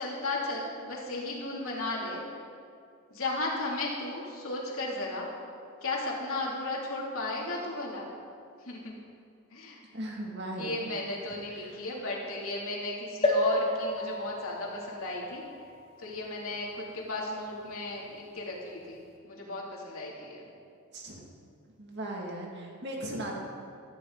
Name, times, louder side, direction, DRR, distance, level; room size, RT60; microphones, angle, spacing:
voice 1, 0.0-2.2 3.1-5.3 5.8-8.1 8.6-9.0 9.5-9.8 10.5-15.4 16.0-20.4, left 2 dB, 70° left, -3 dB, 3.1 m, -35 dB
voice 2, 9.9-10.8 11.5-11.8 20.9-21.2 21.8-23.4, right 1 dB, 50° right, -1 dB, 2.5 m, -38 dB
sound 1, 13.2-16.9 17.5-17.6 17.8-17.9, left 1 dB, 25° left, 2.0 m, -32 dB
16.5 x 14.0 x 4.1 m, 2.4 s
head